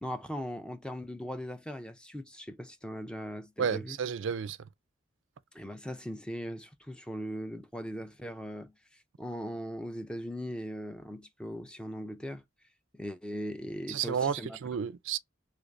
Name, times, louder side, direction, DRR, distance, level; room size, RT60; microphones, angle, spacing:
voice 1, 0.0-4.0 5.5-12.4 12.9-14.6, equal, 5° left, 0.4 m, -39 dB
voice 2, 3.6-4.6 13.9-15.2, right 7 dB, 75° right, 0.4 m, -31 dB
3.3 x 2.5 x 3.2 m
head